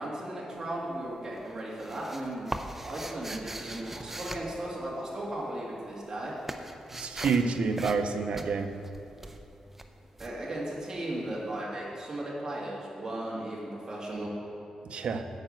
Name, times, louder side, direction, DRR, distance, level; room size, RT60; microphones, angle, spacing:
voice 1, 0.0-2.5 2.8-6.3 10.2-14.3, right 1 dB, 30° right, -5 dB, 2.2 m, -36 dB
sound 1, 0.5-1.1 1.4-5.4 5.7-11.3, right 1 dB, 15° right, 0.5 m, -41 dB
voice 2, 6.9-8.8 14.8-15.3, right 5 dB, 65° right, 7 dB, 0.6 m, -28 dB
9.6 x 5.6 x 7.7 m, 2.9 s
wide cardioid pair, 155°, 2 cm